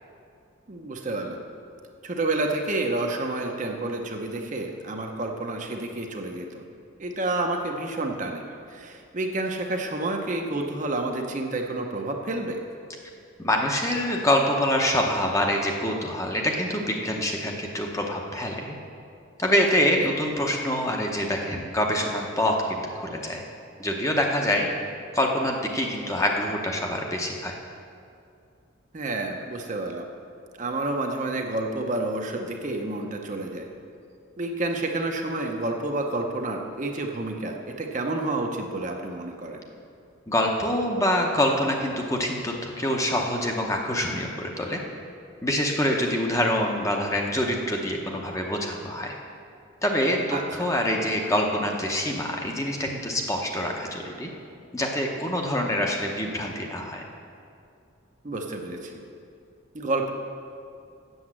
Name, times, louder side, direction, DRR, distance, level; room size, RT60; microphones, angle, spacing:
voice 1, 0.7-1.4 2.0-6.6 7.0-8.4 8.7-12.6 20.0-20.1 28.9-30.1 30.6-33.7 34.4-39.6 50.3-50.7 58.2-59.0 59.7-60.1, right 2 dB, 35° right, 2 dB, 0.7 m, -29 dB
voice 2, 13.4-18.7 19.4-23.4 23.8-24.7 25.1-27.5 40.3-44.8 45.4-49.1 49.8-54.3 54.7-57.0, left 1 dB, 15° left, 1 dB, 0.8 m, -25 dB
8.0 x 7.1 x 7.4 m, 2.5 s
head